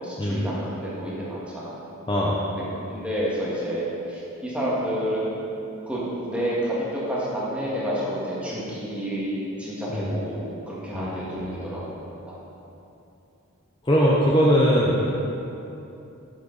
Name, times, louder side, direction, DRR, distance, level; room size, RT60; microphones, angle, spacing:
voice 1, 0.0-1.7 2.8-5.3 5.9-11.9 12.3-12.4 14.9-15.1, equal, 5° right, -8 dB, 1.9 m, -29 dB
voice 2, 10.9-11.6 13.8-15.1, equal, 20° left, -5 dB, 0.7 m, -21 dB
8.4 x 8.1 x 4.1 m, 2.9 s
head